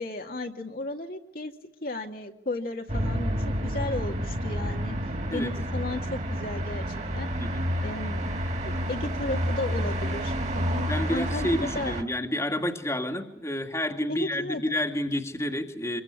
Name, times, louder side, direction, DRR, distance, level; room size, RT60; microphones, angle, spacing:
voice 1, 0.0-5.0 5.3-7.3 7.8-12.0 14.1-14.6, left 2 dB, 50° left, 2 dB, 2.1 m, -34 dB
sound 1, 2.9-12.0, equal, 40° right, 3.5 m, -29 dB
voice 2, 10.9-16.0, left 1 dB, 15° left, 4 dB, 2.3 m, -29 dB
26.5 x 23.0 x 9.7 m, 0.80 s
head